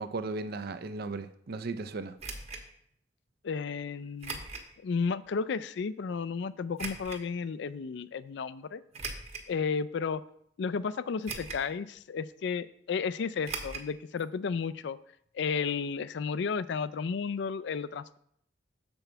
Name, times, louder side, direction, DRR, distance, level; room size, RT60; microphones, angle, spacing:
voice 1, 0.0-2.2, right 3 dB, 55° right, 11 dB, 0.5 m, -36 dB
sound 1, 2.2-2.6 4.2-4.7 5.3-5.4 6.8-7.2 8.9-9.5 10.1-10.2 11.3-11.7 12.0-12.1 13.4-13.9 14.2-14.3 14.5-14.6, right 4 dB, 35° right, 1.2 m, -39 dB
voice 2, 3.4-4.4 4.8-8.8 9.5-10.2 10.6-15.0 15.3-18.2, left 5 dB, 65° left, 16 dB, 0.4 m, -33 dB
6.9 x 4.5 x 6.8 m, 0.69 s
head